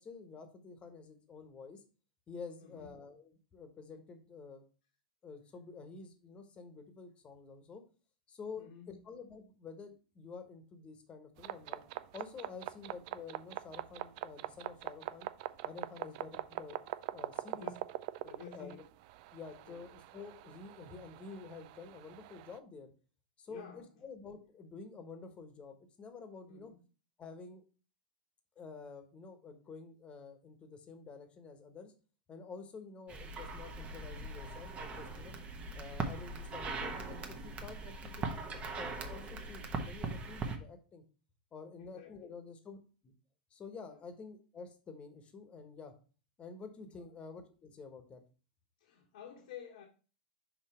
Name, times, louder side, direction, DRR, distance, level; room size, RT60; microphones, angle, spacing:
voice 1, 0.0-1.8 2.3-4.6 5.2-7.8 8.3-11.8 12.1-15.3 15.6-16.8 17.1-17.7 18.2-18.8 19.3-22.9 23.4-26.7 27.2-27.6 28.6-31.9 32.3-35.3 35.7-38.4 38.7-41.0 41.5-42.8 43.0-43.1 43.5-45.9 46.4-48.2, left 4 dB, 25° left, 1.3 m, -49 dB
voice 2, 2.6-2.9 8.6-9.0 16.0-16.1 17.5-17.7 18.2-18.8 19.6-19.8 23.5-23.9 26.5-26.8 41.8-42.4 43.9-44.0 46.9-47.1 48.8-49.9, left 8 dB, 75° left, 1.4 m, -51 dB
Shortwave radio static & beeps, 11.4-22.6, right 15 dB, 55° right, 0.4 m, -44 dB
sound 1, 33.1-40.6, right 3 dB, 25° right, 1.1 m, -40 dB
5.8 x 4.4 x 4.3 m
hypercardioid pair, 115°, 5 cm